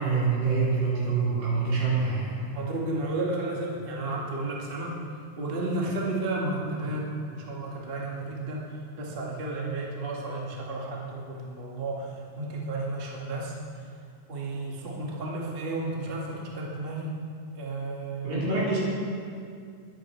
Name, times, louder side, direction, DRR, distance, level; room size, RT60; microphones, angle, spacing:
voice 1, 0.0-2.4 18.2-18.8, right 4 dB, 80° right, -8 dB, 6.7 m, -25 dB
voice 2, 2.5-4.9 5.4-13.9 14.3-17.2 17.5-18.4, right 2 dB, 30° right, -3 dB, 0.9 m, -32 dB
21.5 x 8.9 x 4.6 m, 2.3 s
omnidirectional pair, 4.7 m